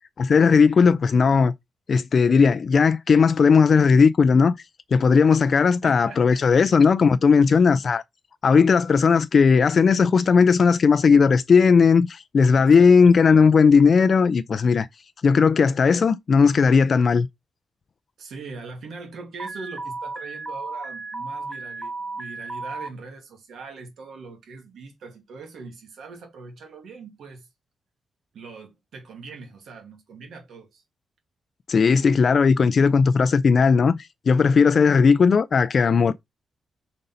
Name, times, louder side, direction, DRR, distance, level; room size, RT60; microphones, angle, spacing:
voice 1, 0.2-1.5 1.9-4.5 4.9-8.0 8.4-14.9 15.2-17.3 31.7-33.9 34.3-36.1, left 5 dB, 45° left, 0.4 m, -17 dB
voice 2, 5.8-6.7 7.4-7.7 12.5-13.1 18.2-27.5 28.3-30.8, right 4 dB, 85° right, 2.2 m, -41 dB
Alarm, 19.4-22.9, right 3 dB, 15° right, 0.8 m, -34 dB
5.3 x 3.9 x 5.5 m
wide cardioid pair, 125°, 0 cm